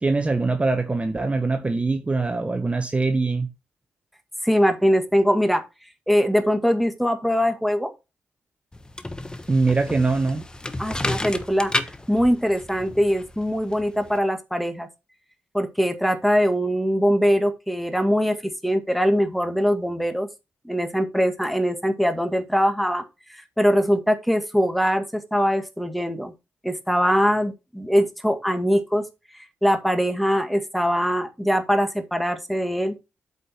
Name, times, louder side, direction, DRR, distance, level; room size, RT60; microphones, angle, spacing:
voice 1, 0.0-3.5 9.5-10.4, right 3 dB, 25° right, 1.2 m, -23 dB
voice 2, 4.4-5.6 6.1-7.9 10.8-11.7 12.1-14.9 15.5-18.4 18.6-20.3 20.6-23.0 23.3-26.3 26.6-29.1 29.6-33.0, equal, ahead, 1.9 m, -22 dB
sound 1, 8.7-14.2, left 2 dB, 20° left, 1.3 m, -32 dB
8.3 x 5.3 x 4.4 m
cardioid pair, 60°, 5 cm